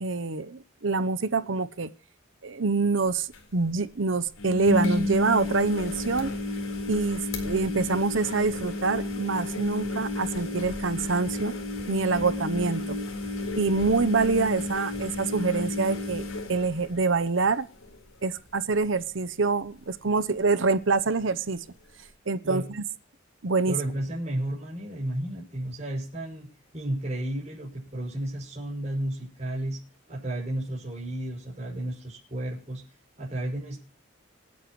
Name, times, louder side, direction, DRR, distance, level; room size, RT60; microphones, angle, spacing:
voice 1, 0.0-1.9 2.4-3.3 3.5-6.3 6.9-11.5 11.9-13.0 13.6-17.7 18.2-21.6 22.3-22.8 23.4-23.7, right 4 dB, 70° right, 15 dB, 0.8 m, -26 dB
sound 1, 3.1-3.2 3.3-3.4 4.4-17.4 17.8-18.2 18.5-18.6 20.4-20.5, left 2 dB, 90° left, 4.1 m, -31 dB
voice 2, 23.6-26.5 26.7-29.8 30.1-32.8 33.2-33.8, right 1 dB, 30° right, -5 dB, 6.2 m, -32 dB
27.0 x 9.4 x 3.1 m, 0.36 s
head